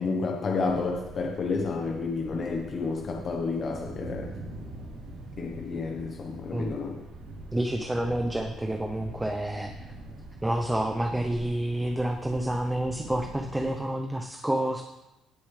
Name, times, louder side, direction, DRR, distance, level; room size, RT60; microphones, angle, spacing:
voice 1, 0.0-4.3 5.4-7.0, left 4 dB, 45° left, 1 dB, 1.0 m, -30 dB
Thunder, 0.6-13.7, right 1 dB, 80° right, 4.0 m, -44 dB
voice 2, 7.5-9.7 10.4-14.8, right 1 dB, 10° right, 4 dB, 0.7 m, -29 dB
17.0 x 6.9 x 3.3 m, 0.99 s
cardioid pair, 120°, 0 cm